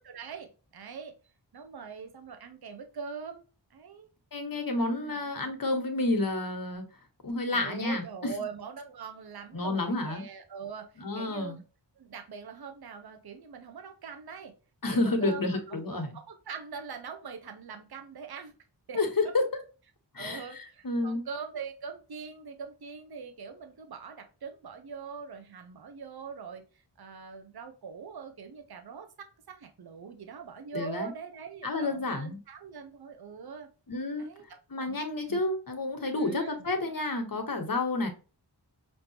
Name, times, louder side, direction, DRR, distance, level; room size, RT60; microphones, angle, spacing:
voice 1, 0.0-1.1 1.5-3.4 3.7-4.1 4.8-5.2 7.5-11.6 12.0-14.5 14.9-18.5 18.9-19.0 20.2-26.6 27.0-33.7 34.2-35.4 36.2-36.6, right 6 dB, 60° right, 6 dB, 0.8 m, -43 dB
voice 2, 4.3-6.8 7.2-8.3 9.5-10.2 11.0-11.6 14.8-16.1 18.9-19.4 20.1-21.2 30.7-31.1 31.6-32.4 33.9-34.3 34.7-38.1, left 2 dB, 50° left, 5 dB, 1.1 m, -30 dB
5.2 x 2.8 x 2.8 m, 0.34 s
wide cardioid pair, 55°, 42 cm